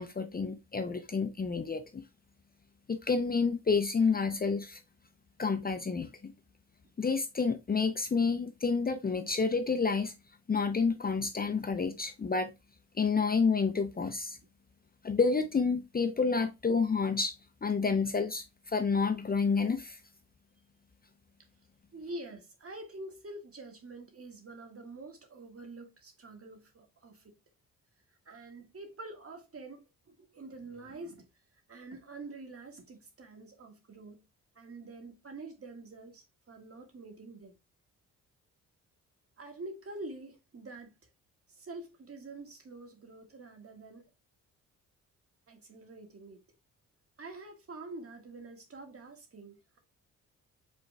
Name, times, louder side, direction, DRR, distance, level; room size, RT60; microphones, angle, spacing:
voice 1, 0.0-2.0 2.9-4.8 5.4-6.3 7.0-10.1 10.5-12.5 13.0-14.4 15.0-17.3 17.6-20.0, left 4 dB, 25° left, 0.6 m, -29 dB
voice 2, 21.9-27.3 28.2-31.3 31.7-34.2 34.5-37.6 39.4-40.9 41.5-44.0 45.5-46.4 47.2-49.8, right 2 dB, 40° right, 1.8 m, -46 dB
5.3 x 4.3 x 2.3 m
supercardioid pair, 60°, 34 cm